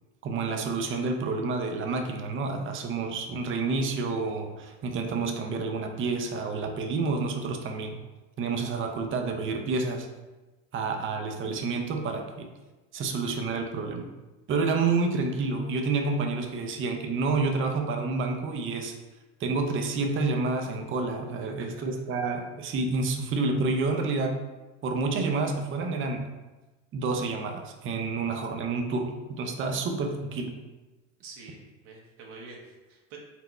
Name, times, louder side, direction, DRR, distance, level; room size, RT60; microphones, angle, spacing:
voice 1, 0.2-8.0 8.4-10.1 10.7-12.5 12.9-14.1 14.5-18.9 19.4-24.4 24.8-26.2 26.9-30.5, right 3 dB, 35° right, 4 dB, 0.6 m, -29 dB
voice 2, 21.4-21.8 31.2-33.2, right 3 dB, 65° right, -2 dB, 1.0 m, -47 dB
4.3 x 2.1 x 4.2 m, 1.2 s
supercardioid pair, 90°, 37 cm